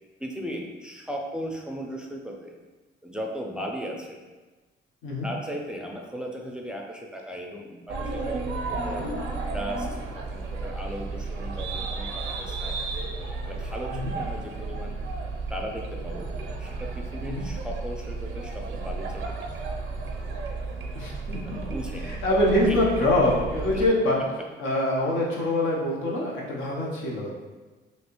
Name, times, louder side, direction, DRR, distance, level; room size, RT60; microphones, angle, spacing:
voice 1, 0.2-2.6 3.0-4.2 5.2-8.4 8.7-9.1 9.5-12.8 13.4-15.0 15.5-19.6 21.4-22.2 22.7-22.8 23.7-23.8 24.4-24.5, equal, 5° right, 0 dB, 0.4 m, -37 dB
sound 1, 7.9-23.9, right 3 dB, 75° right, 0.5 m, -33 dB
voice 2, 20.9-21.4 21.7-21.8 22.2-24.2 24.6-27.3, left 1 dB, 85° left, -3 dB, 0.8 m, -24 dB
3.1 x 2.7 x 3.0 m, 1.3 s
cardioid pair, 90°, 20 cm